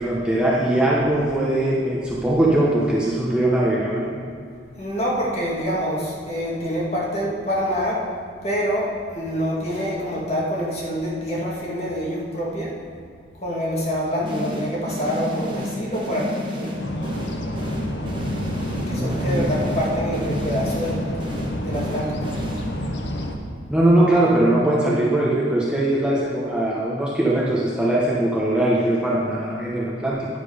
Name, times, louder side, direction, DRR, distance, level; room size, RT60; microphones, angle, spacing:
voice 1, 0.0-4.2 18.7-19.6 23.7-30.3, right 1 dB, 5° right, -6 dB, 1.0 m, -21 dB
voice 2, 4.7-8.1 8.4-12.8 13.4-16.8 18.9-21.1 21.6-22.4, equal, 35° left, -4 dB, 2.1 m, -26 dB
sound 1, 14.2-23.0, left 1 dB, 25° right, 1.2 m, -32 dB
sound 2, 16.8-23.4, equal, 65° left, 1.0 m, -29 dB
9.8 x 7.5 x 5.0 m, 2.3 s
head